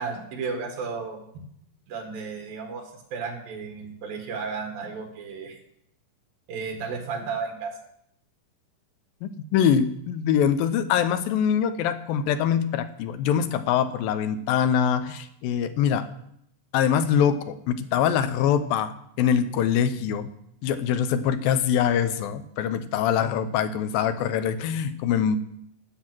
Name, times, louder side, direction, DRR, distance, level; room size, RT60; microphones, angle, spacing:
voice 1, 0.0-1.4 1.9-5.6 6.5-7.8, right 5 dB, 80° right, 3 dB, 3.7 m, -33 dB
voice 2, 9.2-16.1 16.7-20.3 20.6-25.4, left 8 dB, 85° left, 11 dB, 2.6 m, -24 dB
15.5 x 6.8 x 6.1 m, 0.73 s
omnidirectional pair, 4.0 m